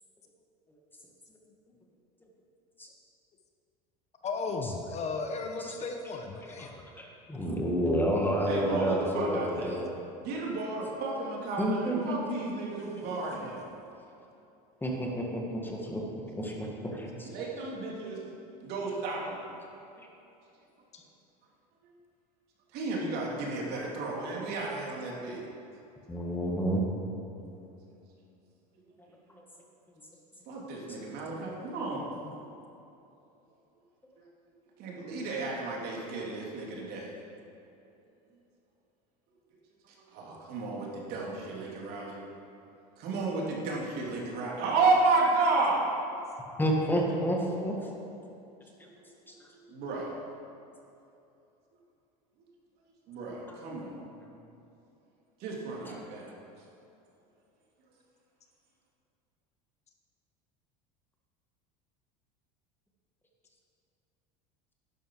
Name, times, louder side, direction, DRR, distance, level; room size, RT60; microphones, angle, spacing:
voice 1, 4.2-6.7 20.9-21.0 32.2-32.3, left 4 dB, 35° left, 4 dB, 1.2 m, -35 dB
voice 2, 7.0-9.9 11.6-12.1 14.8-16.0 16.3-17.3 20.0-20.1 26.1-26.8 46.6-47.8, equal, 10° left, -1 dB, 1.9 m, -29 dB
voice 3, 8.4-9.7 10.2-13.6 17.2-18.2 18.6-19.4 21.8-21.9 22.7-25.4 30.5-32.1 34.8-37.1 40.1-42.2 43.0-45.9 49.7-50.2 53.1-54.0 55.4-56.3, right 3 dB, 55° right, -3 dB, 3.2 m, -32 dB
11.5 x 11.0 x 4.9 m, 2.8 s
supercardioid pair, 110°, 19 cm